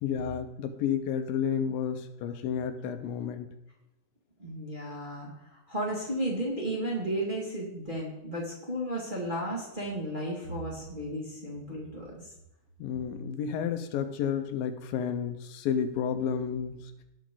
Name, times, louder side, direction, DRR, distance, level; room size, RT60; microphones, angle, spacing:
voice 1, 0.0-3.5 12.8-16.8, left 8 dB, 90° left, 8 dB, 2.6 m, -31 dB
voice 2, 4.4-12.1, right 1 dB, 15° right, -5 dB, 2.0 m, -34 dB
17.5 x 6.2 x 3.9 m, 0.88 s
omnidirectional pair, 3.9 m